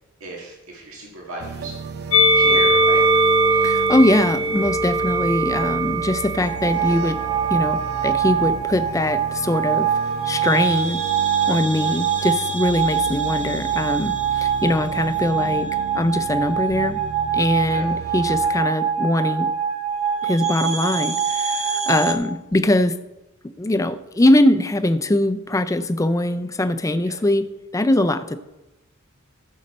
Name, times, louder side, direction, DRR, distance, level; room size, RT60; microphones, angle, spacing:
voice 1, 0.2-1.8 2.3-3.0 11.8-12.0 17.7-17.9 21.8-22.0 27.0-27.2, right 1 dB, 85° right, -2 dB, 1.9 m, -36 dB
sound 1, 1.4-18.5, right 5 dB, 50° right, 0.5 m, -35 dB
Musical instrument, 2.1-8.5 9.4-10.4, right 1 dB, 90° left, 1.0 m, -21 dB
voice 2, 3.5-7.2 7.5-9.9 10.2-11.0 11.5-17.0 17.3-19.5 20.2-23.0 23.6-27.5 27.7-28.4, left 1 dB, 15° left, 12 dB, 0.4 m, -21 dB
sound 2, 6.4-22.1, right 7 dB, 35° right, 1.3 m, -24 dB
14.5 x 6.4 x 4.2 m, 1.0 s
head